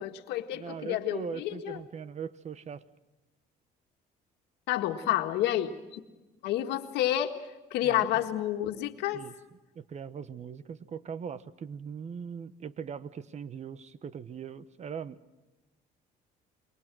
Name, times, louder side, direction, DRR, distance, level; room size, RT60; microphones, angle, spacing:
voice 1, 0.0-1.8 4.7-6.0 6.4-7.4 7.7-9.2, left 12 dB, 90° left, 6 dB, 1.8 m, -29 dB
voice 2, 0.5-2.8 7.8-8.2 9.1-9.3 9.7-15.2, right 6 dB, 40° right, 15 dB, 1.1 m, -40 dB
28.5 x 22.0 x 6.2 m, 1.1 s
cardioid pair, 110°, 17 cm